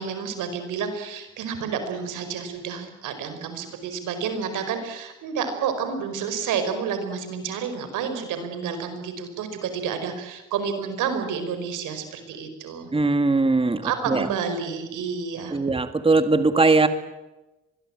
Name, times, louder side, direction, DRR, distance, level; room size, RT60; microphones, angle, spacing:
voice 1, 0.0-12.9 13.8-15.6, right 6 dB, 85° right, 8 dB, 5.0 m, -30 dB
voice 2, 12.9-14.3 15.5-16.9, right 3 dB, 20° right, 10 dB, 1.8 m, -20 dB
24.5 x 21.0 x 8.9 m, 1.0 s
cardioid pair, 90°, 30 cm